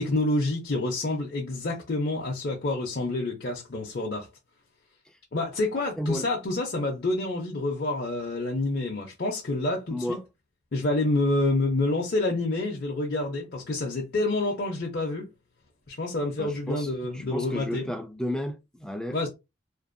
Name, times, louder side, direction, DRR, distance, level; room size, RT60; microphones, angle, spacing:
voice 1, 0.0-4.3 5.3-10.2 10.7-15.3 15.9-17.8 19.1-19.3, left 2 dB, 50° left, 0.5 m, -28 dB
voice 2, 9.9-10.2 16.4-19.3, left 1 dB, 5° left, 0.3 m, -33 dB
2.5 x 2.2 x 2.5 m
head